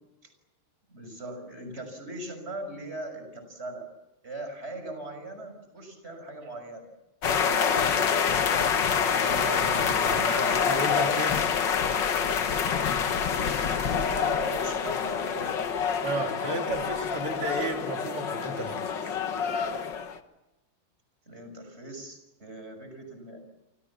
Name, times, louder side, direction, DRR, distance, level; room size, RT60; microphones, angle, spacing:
voice 1, 0.9-3.9 4.2-6.9 7.4-8.6 13.3-15.7 21.3-23.4, right 2 dB, 30° right, 6 dB, 6.4 m, -40 dB
sound 1, 7.2-20.2, left 7 dB, 60° left, 2.0 m, -26 dB
voice 2, 9.0-11.6 16.0-19.2, right 2 dB, 85° right, 3 dB, 3.8 m, -34 dB
29.0 x 25.0 x 7.3 m, 1.0 s
omnidirectional pair, 2.4 m